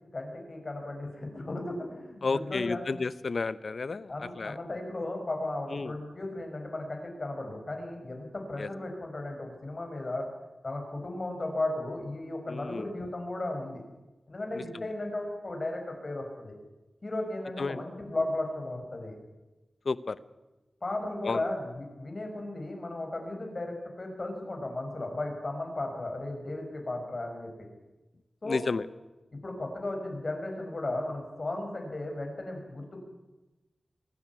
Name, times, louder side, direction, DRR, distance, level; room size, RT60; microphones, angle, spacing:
voice 1, 0.1-2.8 4.1-10.3 10.6-13.8 14.3-16.5 17.0-19.2 20.8-27.7 28.4-28.6 29.4-33.0, left 2 dB, 45° left, 3 dB, 5.9 m, -35 dB
voice 2, 2.2-4.6 5.7-5.9 8.6-8.7 12.5-12.8 14.7-14.8 17.6-17.8 19.8-20.2 21.2-21.4 28.5-28.9, left 4 dB, 65° left, 16 dB, 0.8 m, -31 dB
24.0 x 12.5 x 9.6 m, 1.1 s
wide cardioid pair, 85°, 0 cm